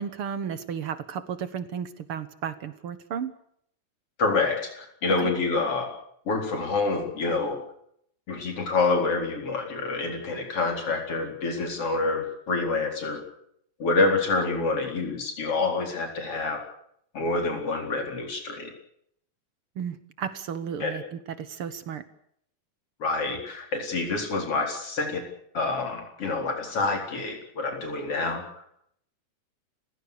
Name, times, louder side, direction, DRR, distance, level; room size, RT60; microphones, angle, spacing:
voice 1, 0.0-3.3 5.2-5.3 19.8-22.0, right 7 dB, 55° right, 13 dB, 1.7 m, -33 dB
voice 2, 4.2-5.9 6.3-7.6 8.3-13.2 13.8-16.6 17.1-18.7 20.8-20.9 23.0-25.2 25.5-28.4, left 3 dB, 45° left, 3 dB, 5.1 m, -27 dB
29.5 x 16.5 x 6.8 m, 0.70 s
omnidirectional pair, 3.6 m